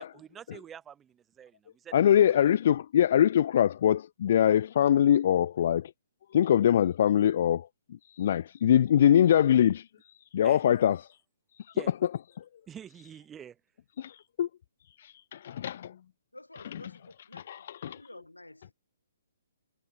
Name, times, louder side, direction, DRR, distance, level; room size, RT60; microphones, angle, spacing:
voice 1, 0.0-2.1 10.4-10.6 11.7-11.9 12.7-13.6, right 8 dB, 15° right, 0.8 m, -47 dB
voice 2, 1.9-5.9 6.3-9.9 10.3-11.0 11.7-11.8 14.0-14.5 15.0-16.0 17.3-18.0, left 10 dB, 50° left, 0.3 m, -23 dB
voice 3, 16.3-18.7, left 2 dB, 90° left, 7.7 m, -51 dB
figure-of-eight pair, 125°, 0 cm